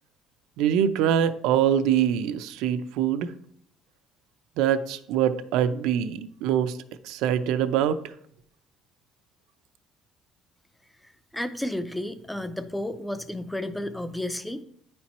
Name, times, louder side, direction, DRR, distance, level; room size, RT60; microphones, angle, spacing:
voice 1, 0.6-3.3 4.6-6.7 7.0-8.0, right 9 dB, 85° right, 11 dB, 0.5 m, -24 dB
voice 2, 11.3-14.6, left 1 dB, 5° left, 12 dB, 0.4 m, -32 dB
9.6 x 4.4 x 4.2 m, 0.67 s
cardioid pair, 180°, 0 cm